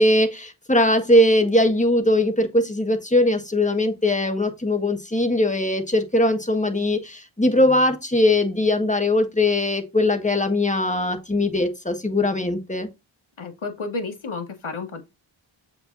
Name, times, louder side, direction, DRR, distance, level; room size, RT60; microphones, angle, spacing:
voice 1, 0.0-12.9, left 1 dB, 15° left, 1.5 m, -20 dB
voice 2, 13.4-15.0, left 3 dB, 85° left, 1.8 m, -31 dB
7.4 x 4.9 x 2.6 m
wide cardioid pair, 65°, 47 cm